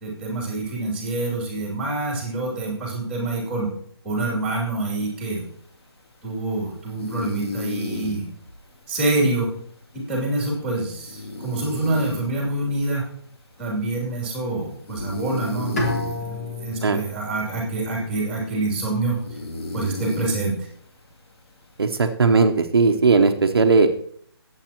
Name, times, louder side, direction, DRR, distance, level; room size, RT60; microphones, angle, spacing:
voice 1, 0.0-3.7 4.0-5.4 6.2-8.3 8.9-9.5 9.9-13.0 13.6-15.9 16.2-19.2 19.7-20.7, right 2 dB, 5° right, -2 dB, 2.8 m, -26 dB
sound 1, 5.0-22.1, left 2 dB, 75° left, 2.7 m, -37 dB
Bowed string instrument, 15.8-18.8, left 2 dB, 35° left, 1.9 m, -31 dB
voice 2, 21.8-23.9, right 4 dB, 65° right, 5 dB, 1.0 m, -17 dB
19.0 x 8.3 x 3.0 m, 0.63 s
hypercardioid pair, 175°, 14 cm